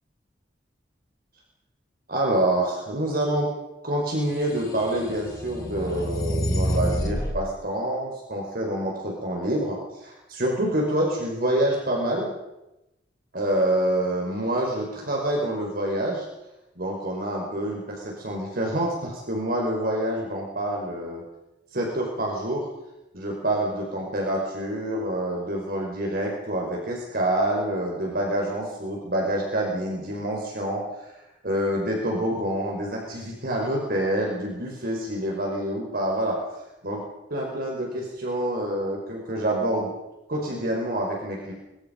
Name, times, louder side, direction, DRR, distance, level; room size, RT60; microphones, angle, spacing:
voice 1, 2.1-3.5 3.8-12.3 13.3-16.3 16.8-21.2 21.7-22.7 23.1-30.8 31.4-36.4 36.8-37.0 37.3-39.9 40.3-41.5, right 1 dB, 55° right, -1 dB, 5.2 m, -27 dB
sound 1, 4.4-7.4, equal, 20° left, 3.5 m, -28 dB
24.5 x 23.5 x 5.4 m, 0.94 s
head